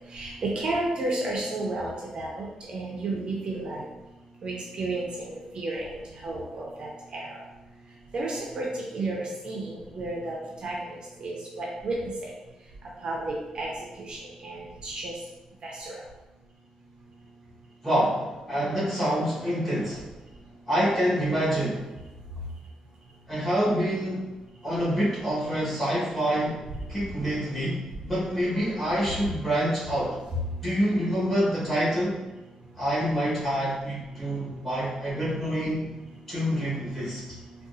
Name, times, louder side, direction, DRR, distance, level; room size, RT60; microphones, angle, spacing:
voice 1, 0.1-3.8 4.4-7.3 8.1-8.7 8.9-10.4 10.6-12.0 13.0-13.7 14.0-15.1 15.6-16.0, right 2 dB, 40° right, -2 dB, 0.4 m, -32 dB
voice 2, 17.8-20.0 20.7-21.8 23.3-24.2 24.6-26.6 26.9-30.2 30.6-32.2 32.8-36.0 36.3-37.2, equal, 15° left, -9 dB, 1.3 m, -26 dB
3.7 x 2.3 x 2.6 m, 1.1 s
wide cardioid pair, 170°, 2 cm